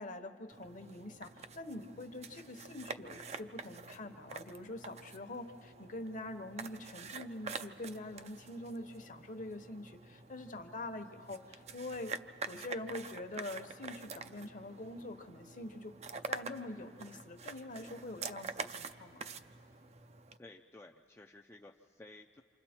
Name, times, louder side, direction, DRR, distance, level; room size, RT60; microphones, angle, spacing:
voice 1, 0.0-12.1 12.5-19.2, left 2 dB, 45° left, 7 dB, 1.1 m, -45 dB
sound 1, 0.5-20.4, right 5 dB, 35° right, 0.5 m, -47 dB
voice 2, 20.4-22.4, left 2 dB, 15° left, 0 dB, 0.5 m, -55 dB
28.5 x 26.5 x 4.4 m, 2.3 s
head